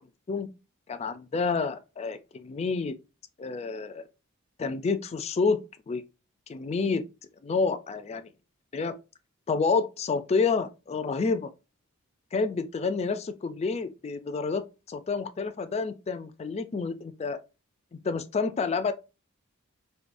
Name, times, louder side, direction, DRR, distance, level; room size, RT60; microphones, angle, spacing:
voice 1, 0.9-2.9 3.4-4.0 4.6-5.6 5.9-6.0 6.5-7.0 7.4-8.2 8.7-8.9 9.5-11.5 12.3-17.4 17.9-18.9, left 4 dB, 30° left, 0.3 m, -29 dB
4.7 x 2.2 x 2.5 m
head